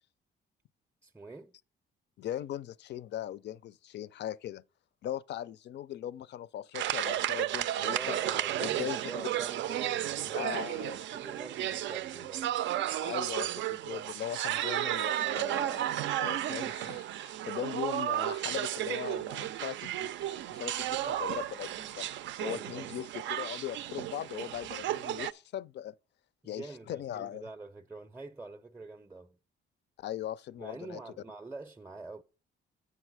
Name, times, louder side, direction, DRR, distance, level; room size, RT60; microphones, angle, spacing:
voice 1, 1.0-1.5 7.8-12.5 22.4-23.0 26.4-29.4 30.6-32.2, right 3 dB, 10° right, 0.5 m, -45 dB
voice 2, 2.2-4.6 5.0-8.2 8.6-9.0 10.3-11.0 13.0-15.8 16.2-22.1 22.4-25.9 26.4-27.5 30.0-31.0, left 11 dB, 60° left, 0.4 m, -39 dB
sound 1, 6.7-25.3, right 12 dB, 70° right, 0.4 m, -33 dB
8.2 x 5.9 x 4.7 m
cardioid pair, 90°, 20 cm